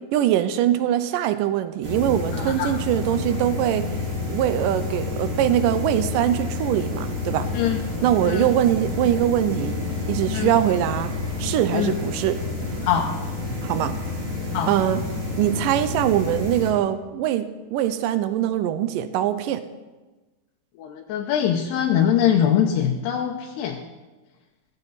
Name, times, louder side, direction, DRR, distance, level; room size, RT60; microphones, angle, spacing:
voice 1, 0.1-3.9 4.3-7.5 8.0-9.8 10.1-11.1 11.4-12.4 13.6-13.9 14.7-15.0 15.4-19.6, right 11 dB, 85° right, 11 dB, 1.9 m, -22 dB
sound 1, 1.8-16.7, left 3 dB, 25° right, 3.5 m, -29 dB
voice 2, 2.3-2.7 7.5-7.8 8.2-8.5 10.3-10.5 11.7-12.0 12.8-13.1 14.5-14.7 20.8-23.8, left 9 dB, 85° left, 1 dB, 3.1 m, -23 dB
15.5 x 15.0 x 4.1 m, 1.2 s
omnidirectional pair, 4.7 m